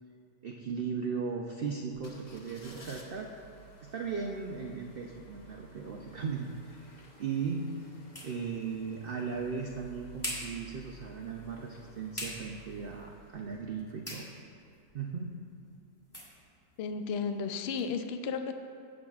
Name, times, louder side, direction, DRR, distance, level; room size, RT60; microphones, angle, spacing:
voice 1, 0.4-3.3 3.8-7.7 8.2-14.3 14.9-15.3, right 5 dB, 85° right, 1 dB, 0.5 m, -37 dB
sound 1, 1.9-14.4 14.8-14.9, right 2 dB, 40° left, 0.7 m, -54 dB
sound 2, 7.6-17.9, equal, 15° left, 2.0 m, -47 dB
voice 2, 16.8-18.5, left 5 dB, 75° left, 7 dB, 0.5 m, -33 dB
16.0 x 7.4 x 2.4 m, 2.5 s
omnidirectional pair, 1.7 m